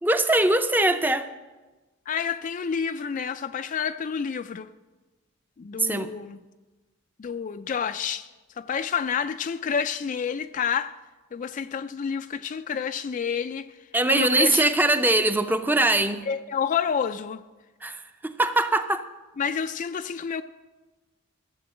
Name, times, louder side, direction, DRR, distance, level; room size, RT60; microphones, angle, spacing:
voice 1, 0.0-1.3 5.8-6.1 13.9-16.2 17.8-19.0, right 2 dB, 10° right, 0.6 m, -22 dB
voice 2, 2.1-4.7 5.6-6.4 7.2-8.3 8.6-10.9 11.3-13.8 14.1-14.7 16.3-17.4 19.4-20.4, left 7 dB, 40° left, 0.3 m, -29 dB
14.5 x 6.9 x 7.7 m
head